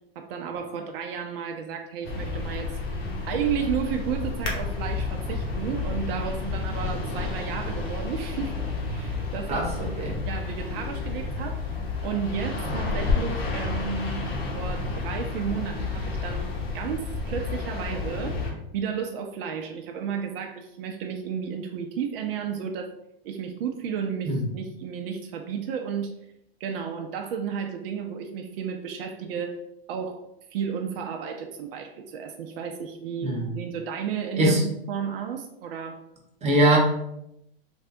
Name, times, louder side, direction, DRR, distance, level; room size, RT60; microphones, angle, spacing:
voice 1, 0.2-2.8 3.3-8.6 8.9-10.0 10.3-11.6 12.0-14.2 14.5-22.9 23.2-26.1 26.6-29.6 29.9-30.2 30.5-36.0, right 7 dB, 70° right, 4 dB, 0.4 m, -32 dB
sound 1, 2.0-18.5, left 4 dB, 75° left, 0.9 m, -30 dB
voice 2, 33.2-33.5 34.4-34.6 36.4-36.8, right 1 dB, 20° right, -1 dB, 0.8 m, -22 dB
3.3 x 2.2 x 2.6 m, 0.81 s
hypercardioid pair, 110°, 30 cm